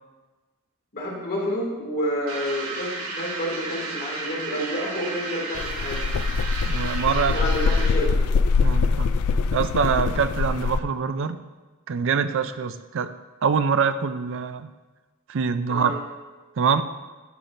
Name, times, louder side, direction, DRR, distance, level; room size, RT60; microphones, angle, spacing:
voice 1, 0.9-6.0 7.1-8.3 15.7-16.0, equal, 45° left, -4 dB, 2.5 m, -29 dB
sound 1, 2.3-8.1, right 3 dB, 75° right, 1.5 m, -33 dB
sound 2, 5.5-10.8, left 4 dB, 90° left, 0.4 m, -23 dB
voice 2, 6.7-7.5 8.6-9.1 9.5-11.4 11.9-13.1 13.4-14.7 15.3-15.9 16.6-16.8, right 6 dB, 60° right, 11 dB, 0.4 m, -24 dB
11.5 x 6.8 x 2.6 m, 1.3 s
head